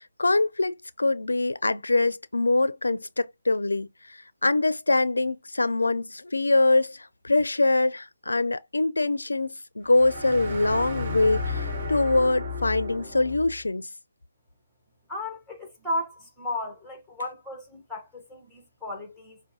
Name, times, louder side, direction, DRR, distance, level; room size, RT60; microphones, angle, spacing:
voice 1, 0.0-13.9, left 2 dB, 85° left, 0.4 m, -24 dB
sound 1, 9.9-13.6, left 3 dB, 30° right, 1.7 m, -33 dB
voice 2, 15.1-19.4, left 1 dB, ahead, 1.1 m, -34 dB
5.8 x 2.2 x 2.7 m
figure-of-eight pair, 155°, 0 cm